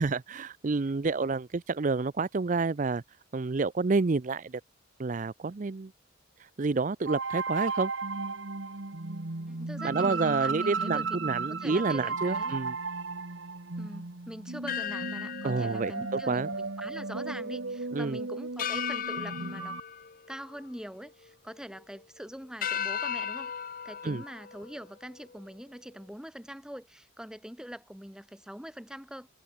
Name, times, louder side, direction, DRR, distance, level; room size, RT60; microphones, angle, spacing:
voice 1, 0.0-3.0 3.3-4.6 5.0-5.9 6.4-7.9 9.8-12.8 15.4-16.5 17.9-18.2 24.0-24.2, right 4 dB, 40° right, 0.5 m, -29 dB
sound 1, 7.1-19.8, right 4 dB, 70° right, 1.5 m, -35 dB
voice 2, 9.5-11.1 11.5-12.6 13.8-19.8 20.3-23.5 23.8-29.3, equal, 5° right, 1.3 m, -43 dB
sound 2, 14.7-17.2 17.5-17.6 18.6-21.1 21.5-22.0 22.6-25.4, left 8 dB, 45° left, 0.8 m, -37 dB
head